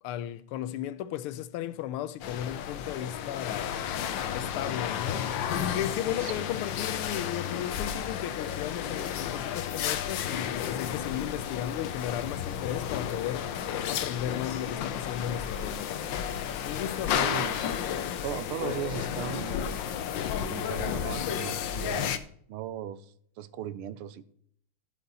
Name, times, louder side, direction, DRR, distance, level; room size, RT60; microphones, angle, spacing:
voice 1, 0.0-3.8 4.3-5.3 5.7-16.1 16.6-17.2, left 11 dB, 90° left, 1.5 m, -35 dB
sound 1, 2.2-22.2, left 9 dB, 65° left, 1.4 m, -32 dB
voice 2, 17.2-17.7 18.2-19.8 20.4-22.2 22.5-24.3, right 11 dB, 85° right, 1.6 m, -37 dB
16.0 x 6.8 x 4.2 m
omnidirectional pair, 2.4 m